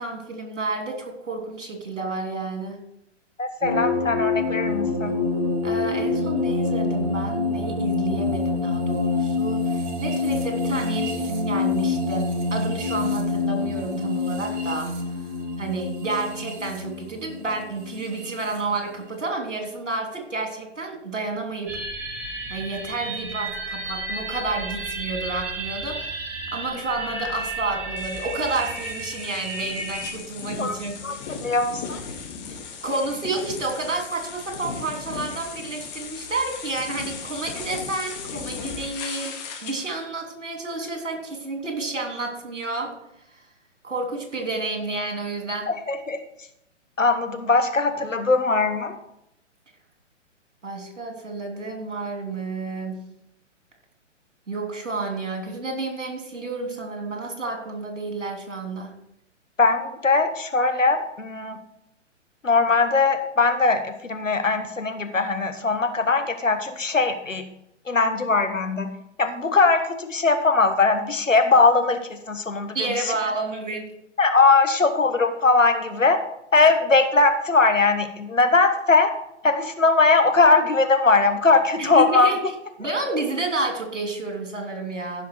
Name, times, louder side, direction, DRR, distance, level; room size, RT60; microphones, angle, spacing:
voice 1, 0.0-2.8 5.6-14.9 15.6-21.8 22.5-26.2 26.5-31.0 32.8-42.9 43.8-45.7 50.6-52.9 54.5-58.9 72.7-73.9 81.8-82.4 82.8-85.3, right 3 dB, 70° right, 2 dB, 3.3 m, -30 dB
voice 2, 3.4-5.1 30.6-30.8 31.0-31.1 31.4-32.0 45.7-46.2 47.0-49.0 59.6-61.6 62.4-67.4 67.9-68.9 69.2-72.0 72.3-72.9 74.2-76.2 76.5-79.1 79.4-82.3, left 3 dB, 80° left, 7 dB, 1.5 m, -20 dB
sound 1, 3.6-18.6, left 3 dB, 25° right, 1.6 m, -26 dB
sound 2, 21.7-30.1, right 2 dB, 5° right, 0.5 m, -33 dB
sound 3, 28.0-40.0, left 6 dB, 35° left, 2.3 m, -37 dB
15.0 x 5.9 x 4.6 m, 0.79 s
figure-of-eight pair, 125°, 37 cm